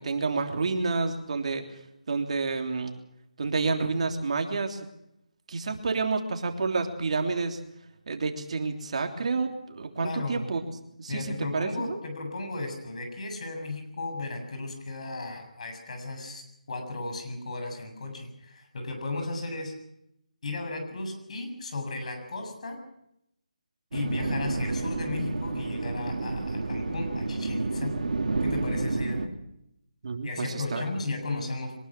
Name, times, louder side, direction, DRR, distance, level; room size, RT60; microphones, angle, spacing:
voice 1, 0.0-1.6 2.1-3.0 3.4-4.8 5.5-7.6 8.1-10.6 11.0-12.0 30.0-30.8, right 4 dB, 50° right, 4 dB, 3.3 m, -29 dB
voice 2, 10.0-10.5 11.1-19.8 20.4-22.8 23.9-28.0 28.4-29.3 30.2-31.8, left 2 dB, 55° left, 5 dB, 7.5 m, -35 dB
sound 1, 23.9-29.3, right 3 dB, 70° right, 3.4 m, -30 dB
23.5 x 20.5 x 6.2 m, 0.79 s
figure-of-eight pair, 160°, 4 cm